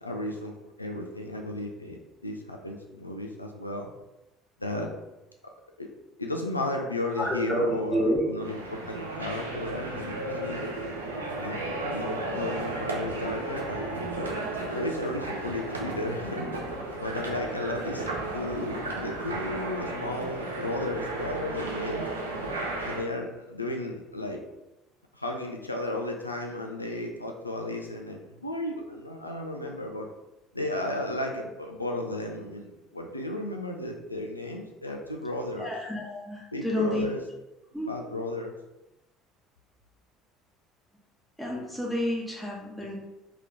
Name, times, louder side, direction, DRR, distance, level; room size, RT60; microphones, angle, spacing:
voice 1, 0.0-3.9 4.6-4.9 5.8-5.9 6.2-10.7 11.4-11.7 11.9-14.3 14.7-16.5 17.0-18.1 18.3-22.1 22.8-24.4 25.2-30.1 30.5-35.7 36.5-37.2 37.9-38.5, left 1 dB, 90° left, 2 dB, 0.3 m, -34 dB
voice 2, 7.1-8.2 35.6-37.1 37.7-37.9 41.4-43.0, equal, 5° left, -3 dB, 1.2 m, -29 dB
sound 1, 8.4-23.0, right 2 dB, 80° right, 0.5 m, -34 dB
3.2 x 2.9 x 3.7 m, 0.97 s
figure-of-eight pair, 60°, 0 cm